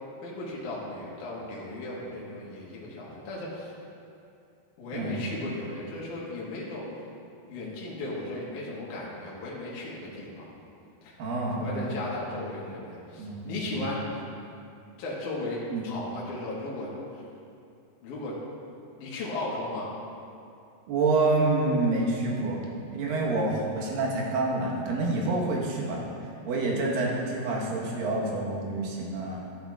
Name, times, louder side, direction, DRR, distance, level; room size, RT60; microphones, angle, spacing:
voice 1, 0.2-3.7 4.8-6.8 7.5-10.5 11.0-11.2 11.6-14.0 15.0-16.9 18.0-18.4 19.0-19.9, left 2 dB, 65° left, -6 dB, 2.7 m, -36 dB
voice 2, 4.9-5.3 11.2-12.3 13.2-13.9 15.7-15.8 20.9-22.6 22.9-26.1 26.4-29.4, right 2 dB, 75° right, -3 dB, 3.0 m, -28 dB
14.0 x 8.7 x 2.4 m, 2.5 s
omnidirectional pair, 4.1 m